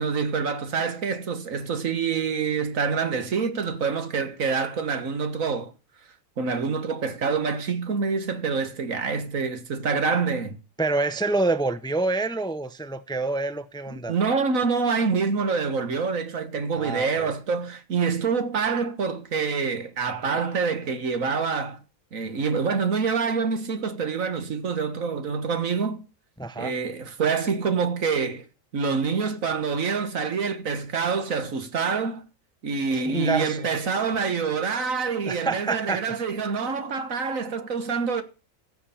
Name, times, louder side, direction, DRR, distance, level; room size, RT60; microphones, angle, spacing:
voice 1, 0.0-5.7 6.4-10.6 14.1-21.8 22.1-26.0 26.6-28.4 28.7-32.2 32.6-38.2, right 5 dB, 90° right, 1.9 m, -26 dB
voice 2, 10.8-14.2 16.7-17.3 26.4-26.7 32.9-33.7 35.2-36.0, right 3 dB, 5° left, 0.5 m, -27 dB
15.5 x 6.7 x 5.7 m
omnidirectional pair, 1.4 m